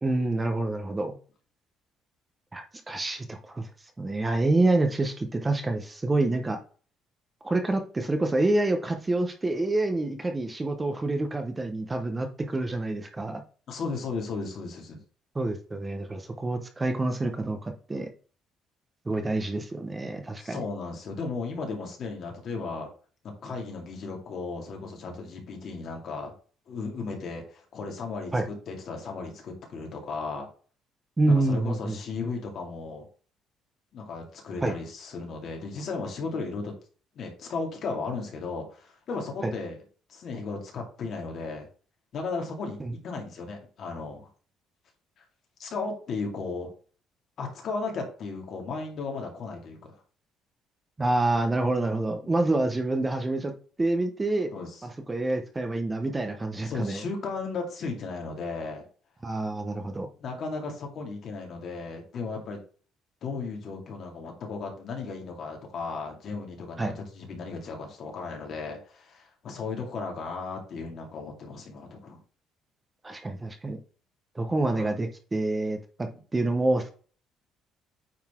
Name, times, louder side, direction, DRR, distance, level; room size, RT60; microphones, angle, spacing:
voice 1, 0.0-1.2 2.5-3.7 4.0-6.6 7.4-13.4 15.3-18.1 19.1-20.6 28.3-28.4 31.2-32.0 34.6-34.7 39.4-39.5 42.8-42.9 51.0-53.5 53.8-54.5 54.8-57.0 59.2-60.1 66.8-66.9 73.0-73.8 74.3-75.8 76.3-76.9, right 2 dB, 15° right, 6 dB, 0.7 m, -27 dB
voice 2, 13.7-15.0 20.4-22.9 23.2-26.3 26.7-30.5 31.3-33.1 33.9-36.7 37.2-39.8 40.1-41.7 42.1-42.8 43.0-44.3 45.2-45.3 45.6-46.7 47.4-50.0 54.5-54.7 56.7-58.8 60.2-62.6 63.2-72.2 74.7-74.9, left 4 dB, 45° left, 2 dB, 2.2 m, -35 dB
9.0 x 4.0 x 3.6 m, 0.41 s
cardioid pair, 170°, 0 cm